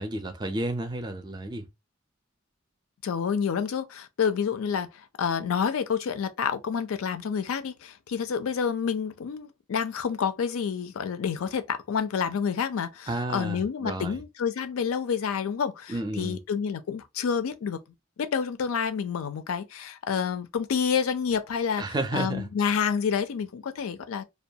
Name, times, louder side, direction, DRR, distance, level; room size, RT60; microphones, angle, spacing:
voice 1, 0.0-1.6 13.1-14.2 15.9-16.4 21.8-22.5, right 2 dB, 20° right, 0.3 m, -31 dB
voice 2, 3.0-4.9 5.2-17.8 18.3-21.8 22.1-24.2, left 6 dB, 90° left, 0.4 m, -28 dB
2.2 x 2.2 x 2.7 m
head